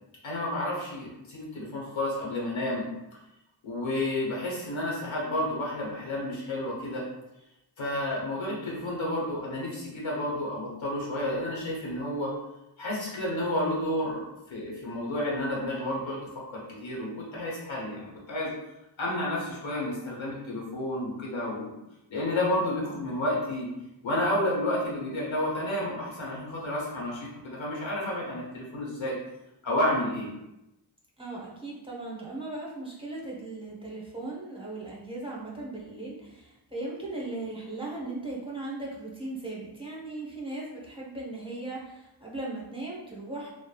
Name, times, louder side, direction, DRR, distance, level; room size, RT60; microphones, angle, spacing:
voice 1, 0.2-2.8 3.6-7.0 7.8-12.3 12.8-16.2 16.5-18.5 19.0-21.8 22.1-23.7 24.0-29.2 29.6-30.3, left 1 dB, 85° left, -4 dB, 1.0 m, -31 dB
voice 2, 31.2-43.5, right 2 dB, 10° right, -5 dB, 0.8 m, -38 dB
3.0 x 2.1 x 2.3 m, 0.92 s
cardioid pair, 55°, 45 cm